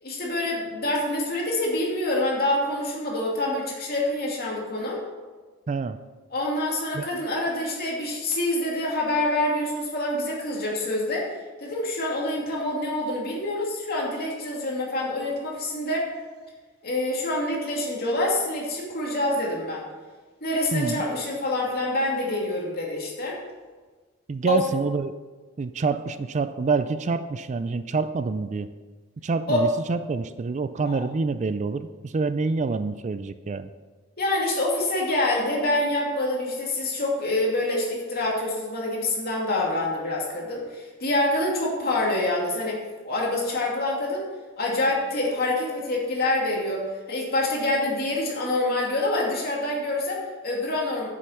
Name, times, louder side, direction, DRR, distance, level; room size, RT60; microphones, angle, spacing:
voice 1, 0.0-5.0 6.3-11.3 11.6-16.1 16.8-19.9 20.4-23.4 24.5-24.6 29.5-29.7 30.9-31.0 34.2-42.8 43.0-44.3 44.6-51.1, left 1 dB, 50° left, -2 dB, 2.6 m, -26 dB
voice 2, 20.7-21.0 24.3-25.1 25.6-28.7 29.2-33.7, right 4 dB, 35° right, 12 dB, 0.4 m, -27 dB
9.2 x 7.8 x 5.8 m, 1.4 s
head